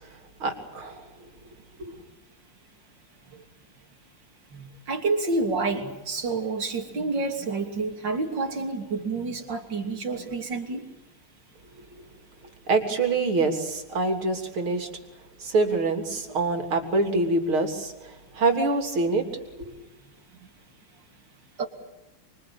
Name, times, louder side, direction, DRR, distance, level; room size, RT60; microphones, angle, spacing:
voice 1, 0.4-1.0 12.7-14.9 15.4-17.9 18.4-19.3, right 3 dB, 75° right, 5 dB, 4.2 m, -25 dB
voice 2, 4.5-10.8 21.6-21.7, right 3 dB, 55° right, 4 dB, 3.6 m, -29 dB
26.5 x 23.5 x 8.8 m, 0.98 s
omnidirectional pair, 2.3 m